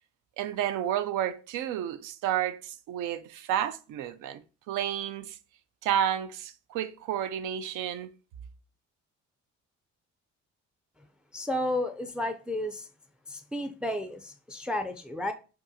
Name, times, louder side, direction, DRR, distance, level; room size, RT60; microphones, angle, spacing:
voice 1, 0.4-4.4 4.7-5.4 5.8-8.1, right 10 dB, 85° right, 0.4 m, -31 dB
voice 2, 11.3-12.9 13.3-15.3, left 1 dB, 5° right, 0.3 m, -32 dB
5.2 x 2.4 x 2.6 m
cardioid pair, 90°, 30 cm